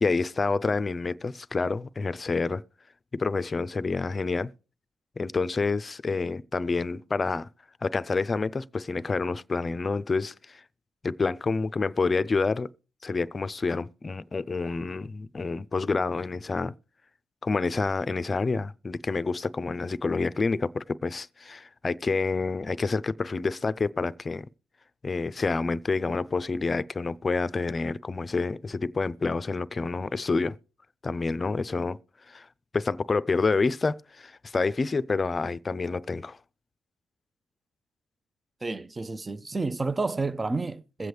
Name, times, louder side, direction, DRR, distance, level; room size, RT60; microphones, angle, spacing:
voice 1, 0.0-2.6 3.1-4.5 5.2-7.5 7.8-10.6 11.0-12.7 13.0-16.7 17.4-24.5 25.0-30.6 31.0-32.0 32.3-32.5 32.7-36.4, left 4 dB, 35° left, 0.5 m, -28 dB
voice 2, 38.6-41.1, right 3 dB, 30° right, 0.6 m, -30 dB
22.0 x 7.7 x 3.3 m
hypercardioid pair, 45°, 0 cm